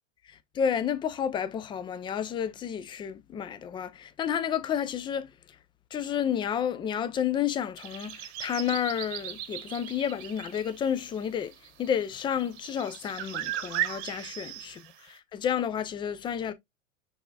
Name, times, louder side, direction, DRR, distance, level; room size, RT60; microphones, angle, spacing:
voice 1, 0.3-5.3 5.9-11.5 11.8-16.5, left 8 dB, 15° left, 0.3 m, -31 dB
sound 1, 7.8-15.1, right 12 dB, 50° right, 1.0 m, -37 dB
5.9 x 3.5 x 2.2 m
hypercardioid pair, 100°, 39 cm